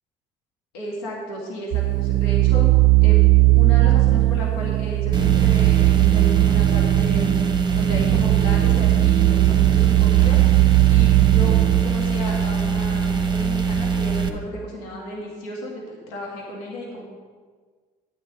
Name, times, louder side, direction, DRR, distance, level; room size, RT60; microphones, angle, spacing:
voice 1, 0.7-2.7 3.0-3.2 3.5-7.3 7.7-17.0, equal, 85° left, -2 dB, 2.1 m, -33 dB
sound 1, 1.7-11.9, right 19 dB, 70° right, 0.4 m, -18 dB
sound 2, 5.1-14.3, right 5 dB, 20° right, 1.2 m, -23 dB
11.5 x 9.5 x 3.9 m, 1.5 s
hypercardioid pair, 60°, 20 cm